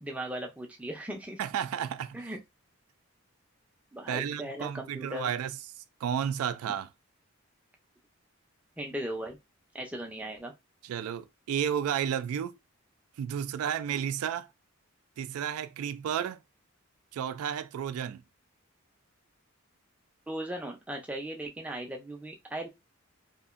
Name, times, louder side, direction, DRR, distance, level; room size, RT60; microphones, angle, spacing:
voice 1, 0.0-1.4 2.1-2.4 3.9-5.3 8.8-9.4 9.7-10.5 20.3-22.7, right 1 dB, 5° right, 0.4 m, -37 dB
voice 2, 1.4-2.2 4.1-5.5 6.0-6.9 10.9-12.5 13.2-14.5 15.2-16.4 17.1-18.2, right 8 dB, 85° right, 0.3 m, -32 dB
2.8 x 2.5 x 2.4 m
head